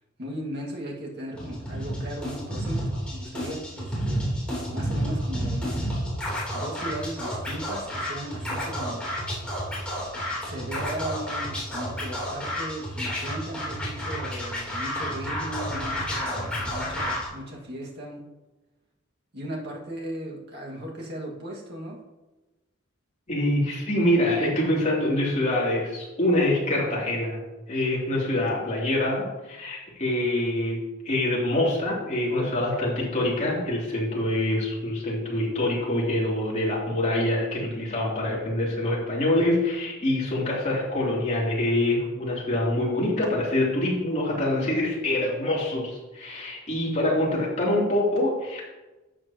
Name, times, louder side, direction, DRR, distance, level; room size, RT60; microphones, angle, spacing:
voice 1, 0.2-4.3 4.7-6.0 6.5-9.1 10.4-18.2 19.3-22.0, right 1 dB, 55° right, -2 dB, 1.9 m, -37 dB
Scratching (performance technique), 1.3-17.2, equal, 5° left, 3.3 m, -31 dB
voice 2, 23.3-27.4 27.7-30.8 31.0-48.7, left 1 dB, 35° left, -5 dB, 3.1 m, -25 dB
12.5 x 7.8 x 3.0 m, 1.1 s
head